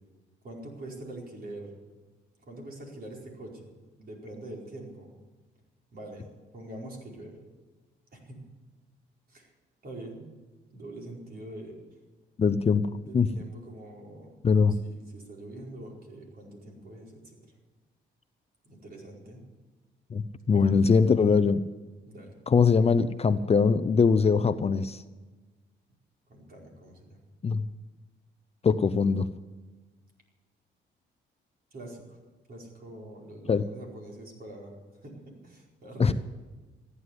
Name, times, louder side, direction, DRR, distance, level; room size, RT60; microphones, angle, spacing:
voice 1, 0.4-1.7 2.4-3.7 4.0-5.1 5.9-7.4 8.1-8.4 9.3-9.5 9.8-10.3 10.7-12.0 13.1-14.3 14.7-17.6 18.6-19.4 20.6-21.2 22.0-22.4 26.3-27.2 31.7-32.2 32.5-36.1, right 1 dB, 50° right, -1 dB, 4.9 m, -44 dB
voice 2, 12.4-12.9 13.1-13.3 14.4-14.8 20.1-21.6 22.5-25.0 27.4-27.6 28.6-29.3 33.5-33.6 36.0-36.1, left 5 dB, 30° left, 13 dB, 0.6 m, -22 dB
14.5 x 9.7 x 9.5 m, 1.3 s
cardioid pair, 90°, 20 cm